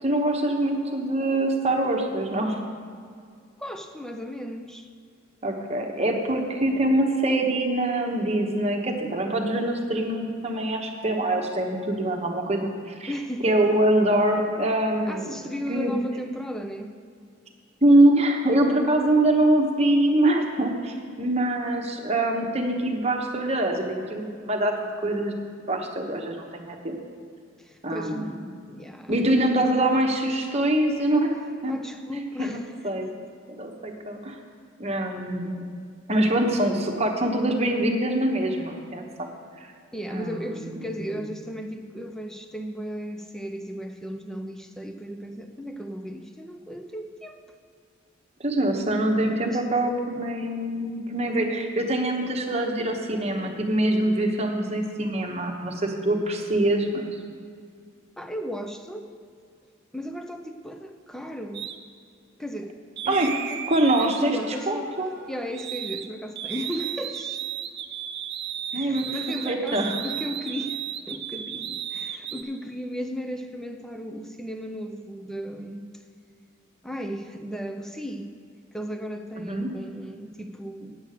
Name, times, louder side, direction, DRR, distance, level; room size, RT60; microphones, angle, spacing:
voice 1, 0.0-2.6 5.4-13.1 13.4-15.4 15.7-15.9 17.8-24.7 25.0-25.3 25.7-27.0 27.8-28.3 29.1-31.4 31.6-31.7 32.4-32.6 32.8-33.1 33.5-34.4 34.8-35.6 36.1-39.3 40.1-40.4 40.7-40.8 48.4-57.1 63.1-63.3 63.6-64.4 64.7-65.1 68.7-69.2 69.4-69.9 79.4-79.7, right 1 dB, 30° right, 2 dB, 1.1 m, -24 dB
voice 2, 3.6-4.9 13.1-13.7 15.1-17.0 27.6-28.2 28.7-29.1 31.7-32.9 39.9-47.4 49.5-49.6 58.2-59.1 59.9-61.7 62.4-62.8 63.0-63.6 64.0-64.9 65.3-67.5 68.7-70.8 71.1-75.9 76.8-78.3 78.7-81.0, equal, ahead, 6 dB, 0.5 m, -35 dB
sound 1, 61.5-61.8 63.0-66.1 66.4-72.4, right 9 dB, 55° right, 0.6 m, -34 dB
9.2 x 8.1 x 6.6 m, 2.2 s
head